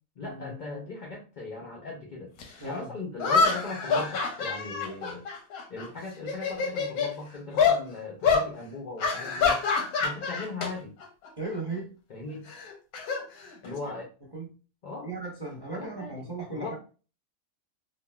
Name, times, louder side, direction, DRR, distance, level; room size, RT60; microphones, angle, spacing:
voice 1, 0.2-2.3 2.6-5.3 5.7-9.6 10.0-10.9 12.1-12.5 13.6-14.1 14.8-15.1 15.7-16.1 16.5-16.8, left 3 dB, 70° left, 0 dB, 0.4 m, -38 dB
sound 1, 2.4-2.5 3.2-5.9 6.2-7.1 7.6-7.8 8.2-8.5 9.0-10.7 11.0-11.3 12.5-13.9, left 5 dB, 90° left, 1.2 m, -26 dB
voice 2, 11.4-11.9 14.3-14.5 15.0-16.8, right 3 dB, 20° right, -3 dB, 0.8 m, -36 dB
3.4 x 2.1 x 2.2 m, 0.35 s
omnidirectional pair, 1.5 m